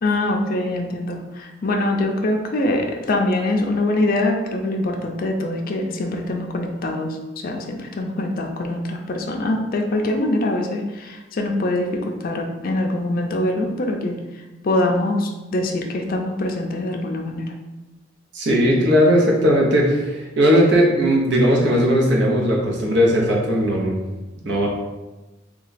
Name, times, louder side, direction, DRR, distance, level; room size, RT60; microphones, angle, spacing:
voice 1, 0.0-7.2 7.4-14.2 14.6-17.5, left 1 dB, 50° left, 2 dB, 0.4 m, -23 dB
voice 2, 18.3-24.0 24.4-24.7, equal, 65° right, -2 dB, 0.8 m, -17 dB
3.0 x 2.3 x 4.0 m, 1.1 s
head